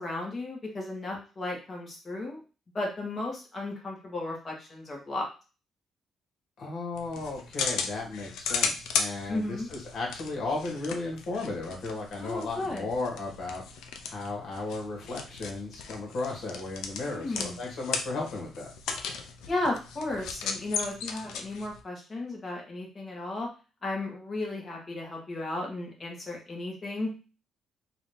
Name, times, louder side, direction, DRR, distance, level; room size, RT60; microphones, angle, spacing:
voice 1, 0.0-2.4 2.7-5.3 9.3-9.7 12.2-12.8 17.1-17.6 19.5-23.5 23.8-27.1, left 2 dB, 35° left, -1 dB, 1.7 m, -34 dB
voice 2, 6.6-13.6 14.1-18.7, left 3 dB, 60° left, -1 dB, 1.9 m, -35 dB
sound 1, 6.9-21.8, left 6 dB, 85° left, 0.5 m, -36 dB
4.0 x 2.7 x 3.4 m, 0.34 s
cardioid pair, 90°, 0 cm